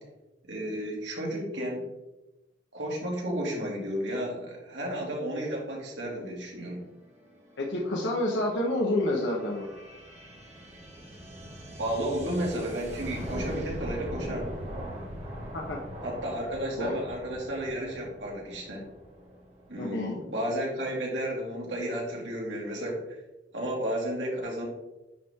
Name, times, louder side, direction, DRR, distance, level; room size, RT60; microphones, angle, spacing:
voice 1, 0.5-1.8 2.7-6.8 11.8-14.5 16.0-18.9 19.7-23.2 23.5-24.7, right 1 dB, 90° right, -2 dB, 2.4 m, -32 dB
sound 1, 6.8-20.3, equal, 40° right, 2.0 m, -41 dB
voice 2, 7.6-9.7 15.5-15.8 16.8-17.0 19.8-20.2, left 1 dB, 80° left, -1 dB, 1.1 m, -28 dB
10.0 x 4.3 x 3.7 m, 1.0 s
head